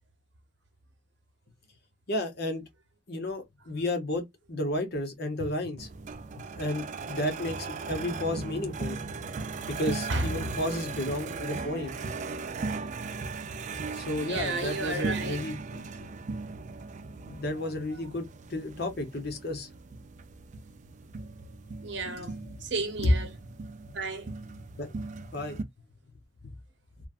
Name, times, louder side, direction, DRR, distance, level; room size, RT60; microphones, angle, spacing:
voice 1, 2.1-2.6 3.1-4.2 4.5-5.9 6.5-9.0 9.7-11.9 13.9-15.9 17.3-19.7 22.2-22.3 23.0-23.2 24.8-24.9 25.3-25.6 26.4-26.5, left 1 dB, 60° left, 0.9 m, -32 dB
sound 1, 5.8-25.6, right 4 dB, 40° right, 0.4 m, -38 dB
voice 2, 10.1-10.5 14.2-15.4 21.8-23.3 23.9-24.3, right 2 dB, 70° right, 0.9 m, -33 dB
3.2 x 2.2 x 2.4 m
head